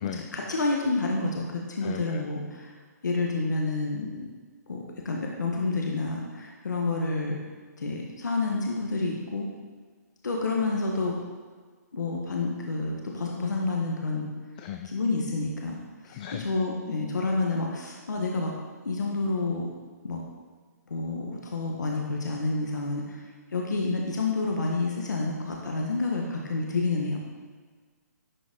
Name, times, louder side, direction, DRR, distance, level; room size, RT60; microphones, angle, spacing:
voice 1, 0.3-2.7 3.0-4.2 4.7-7.4 7.8-9.5 10.2-11.1 11.9-14.3 14.8-15.8 16.0-18.5 18.8-19.7 20.0-20.2 20.9-27.2, left 3 dB, 90° left, -1 dB, 1.2 m, -29 dB
voice 2, 1.8-2.2 14.6-14.9 16.0-16.5, left 10 dB, 30° left, 6 dB, 0.3 m, -37 dB
11.0 x 4.1 x 3.6 m, 1.5 s
hypercardioid pair, 150°, 9 cm